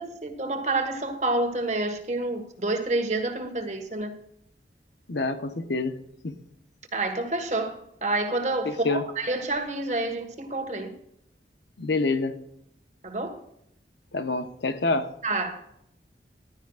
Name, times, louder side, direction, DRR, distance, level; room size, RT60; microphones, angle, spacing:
voice 1, 0.0-4.1 6.9-10.9 13.0-13.4 15.2-15.6, right 2 dB, 40° right, 1.5 m, -28 dB
voice 2, 5.1-5.9 6.2-6.3 8.6-9.0 11.8-12.4 14.1-15.1, left 3 dB, 75° left, 0.9 m, -27 dB
15.0 x 12.0 x 2.4 m
head